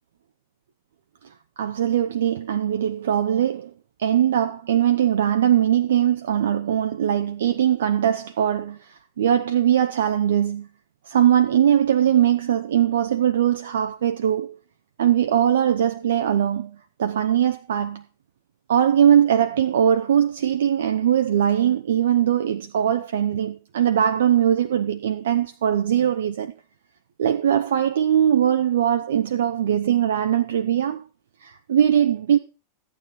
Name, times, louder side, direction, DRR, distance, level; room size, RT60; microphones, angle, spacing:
voice 1, 1.6-3.7 4.0-10.7 11.1-14.6 15.0-18.0 18.7-26.5 27.2-31.0 31.4-32.4, right 10 dB, 60° right, 0.7 m, -21 dB
14.5 x 9.0 x 4.5 m
figure-of-eight pair, 90°, 0 cm